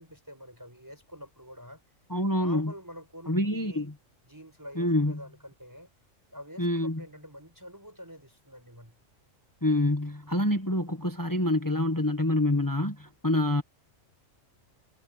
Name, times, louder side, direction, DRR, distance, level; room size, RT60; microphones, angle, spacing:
voice 1, 0.0-1.8 2.4-3.8 4.2-5.9 6.3-8.9, equal, 15° right, 5.2 m, -47 dB
voice 2, 2.1-2.7 3.3-3.9 4.8-5.2 6.6-7.0 9.6-13.6, left 1 dB, 15° left, 1.4 m, -26 dB
omnidirectional pair, 1.4 m